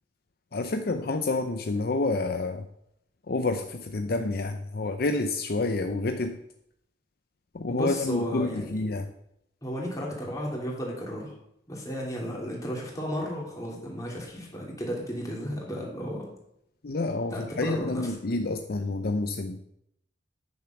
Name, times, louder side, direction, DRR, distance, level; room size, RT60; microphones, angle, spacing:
voice 1, 0.5-2.6 3.3-6.4 7.5-9.1 16.8-19.6, left 2 dB, 55° left, 7 dB, 0.6 m, -28 dB
voice 2, 7.7-8.7 9.6-11.4 11.7-16.3 17.3-18.1, equal, 20° left, -3 dB, 3.0 m, -34 dB
9.5 x 6.9 x 5.9 m, 0.76 s
head